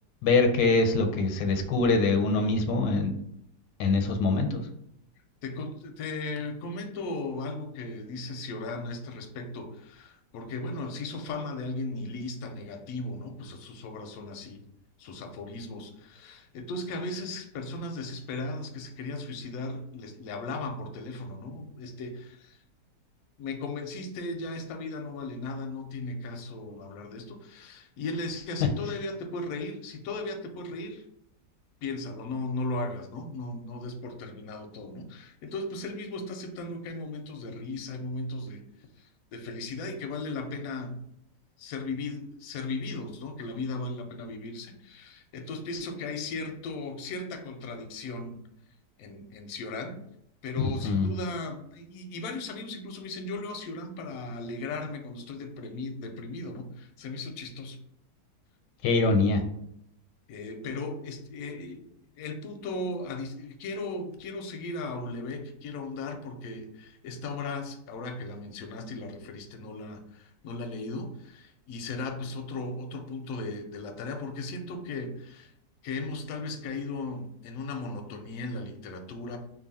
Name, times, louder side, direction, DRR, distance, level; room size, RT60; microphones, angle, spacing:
voice 1, 0.2-3.1 3.8-4.6 50.6-51.1 58.8-59.4, left 3 dB, 90° left, 5 dB, 1.2 m, -24 dB
voice 2, 5.4-14.6 15.0-22.6 23.4-31.0 31.8-38.6 39.0-41.0 41.6-48.4 49.0-50.0 50.4-57.8 60.3-61.9 62.2-75.5 75.8-79.4, left 2 dB, 70° left, 4 dB, 0.9 m, -36 dB
2.7 x 2.6 x 4.0 m, 0.73 s
omnidirectional pair, 1.8 m